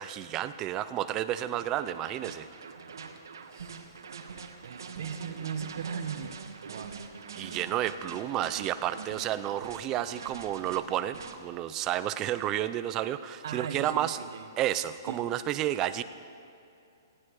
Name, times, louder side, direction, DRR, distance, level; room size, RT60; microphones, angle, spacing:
voice 1, 0.0-2.5 7.4-14.2 14.6-16.0, right 12 dB, 20° right, 13 dB, 0.5 m, -31 dB
sound 1, 1.3-11.3, right 5 dB, 80° right, 1.6 m, -44 dB
voice 2, 3.5-4.0 4.6-7.1 13.4-14.4 15.1-15.2, right 7 dB, 65° right, 7 dB, 1.3 m, -38 dB
18.5 x 16.0 x 4.9 m, 2.6 s
hypercardioid pair, 160°, 2 cm